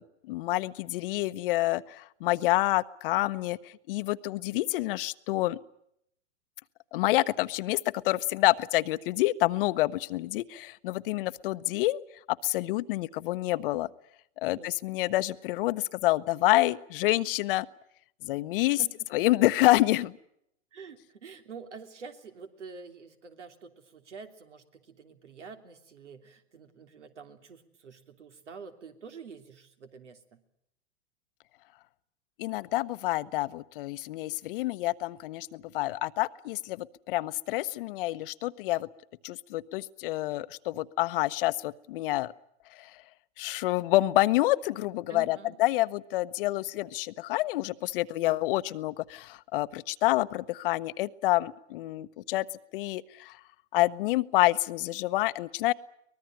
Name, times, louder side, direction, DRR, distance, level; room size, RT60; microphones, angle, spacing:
voice 1, 0.0-5.6 6.9-7.8 8.0-12.0 12.3-13.9 14.4-17.7 18.2-18.8 19.1-20.2 32.4-38.9 39.2-42.3 42.7-42.9 43.4-52.4 52.7-53.4 53.7-55.7, left 18 dB, 50° left, 13 dB, 0.9 m, -28 dB
voice 2, 20.7-30.4 45.1-45.6, right 5 dB, 85° right, 7 dB, 3.3 m, -47 dB
24.0 x 20.0 x 9.0 m, 0.74 s
hypercardioid pair, 125°, 35 cm